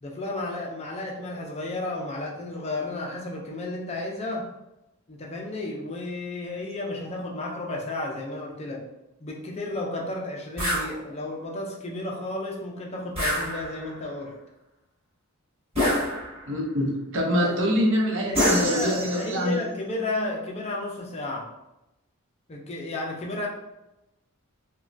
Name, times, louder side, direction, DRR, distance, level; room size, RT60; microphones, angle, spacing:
voice 1, 0.0-4.5 5.1-8.8 9.2-14.3 17.4-17.5 18.2-21.5 22.5-23.5, left 2 dB, 30° left, -1 dB, 0.4 m, -32 dB
sound 1, 10.6-10.9 13.1-14.0 15.7-16.5 18.3-19.5, equal, 30° right, 1.1 m, -26 dB
voice 2, 16.5-19.6, equal, 60° right, -1 dB, 0.7 m, -25 dB
3.0 x 2.2 x 2.5 m, 0.92 s
head